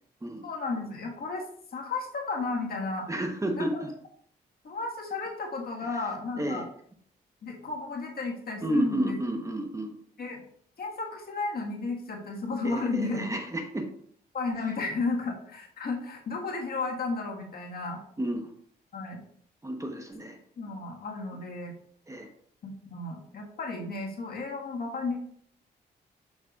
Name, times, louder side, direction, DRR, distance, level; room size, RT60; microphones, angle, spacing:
voice 1, 0.4-1.4 1.7-3.1 3.6-3.8 4.6-6.6 7.4-9.2 10.2-10.4 10.8-13.3 14.3-18.0 18.9-19.2 20.6-21.7 22.6-25.2, left 3 dB, 60° left, 0 dB, 1.6 m, -33 dB
voice 2, 3.1-3.9 5.9-6.0 6.4-6.6 8.6-9.9 12.6-13.9 18.2-18.5 19.6-20.4 22.1-22.3, right 1 dB, 15° right, 4 dB, 1.0 m, -31 dB
6.3 x 6.1 x 2.4 m, 0.63 s
cardioid pair, 75°, 18 cm